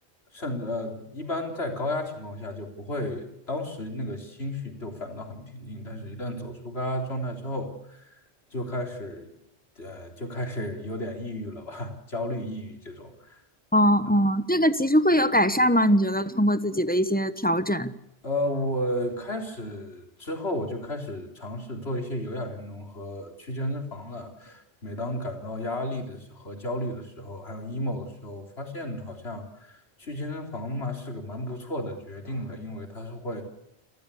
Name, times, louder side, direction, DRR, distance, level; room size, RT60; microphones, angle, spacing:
voice 1, 0.3-8.2 8.5-9.3 9.8-13.4 18.2-33.4, left 1 dB, 70° left, 3 dB, 4.1 m, -33 dB
voice 2, 13.7-17.9, equal, 10° left, 12 dB, 1.0 m, -22 dB
29.0 x 14.0 x 8.4 m, 0.82 s
omnidirectional pair, 1.1 m